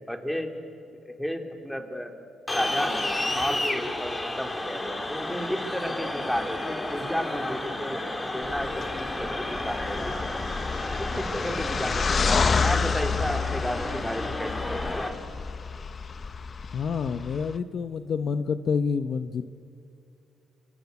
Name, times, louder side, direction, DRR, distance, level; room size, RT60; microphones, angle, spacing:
voice 1, 0.1-0.5 1.0-2.1 2.5-10.2 11.0-15.2, equal, 5° left, 5 dB, 3.3 m, -33 dB
sound 1, 2.5-15.1, left 1 dB, 20° left, 3.4 m, -32 dB
sound 2, 8.4-17.6, left 5 dB, 40° left, 1.2 m, -29 dB
voice 2, 16.7-19.5, left 6 dB, 55° left, 11 dB, 0.9 m, -28 dB
27.5 x 24.0 x 8.4 m, 2.7 s
cardioid pair, 90°, 0 cm